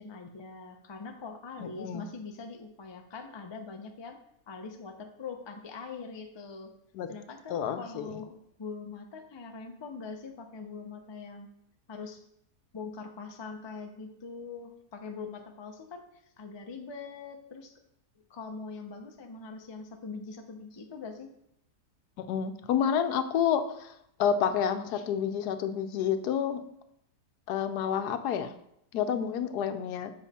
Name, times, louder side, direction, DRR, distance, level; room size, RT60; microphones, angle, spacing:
voice 1, 0.0-4.2 4.5-6.7 7.1-8.3 8.6-11.5 11.9-12.2 12.7-16.0 16.4-17.7 18.2-21.3 24.9-25.0, left 4 dB, 35° left, 4 dB, 0.4 m, -42 dB
voice 2, 1.6-2.0 6.9-7.1 7.5-8.2 22.2-23.9 24.2-26.6 27.5-28.5 28.9-30.1, left 8 dB, 85° left, 9 dB, 1.2 m, -29 dB
7.2 x 5.5 x 4.2 m, 0.76 s
omnidirectional pair, 1.7 m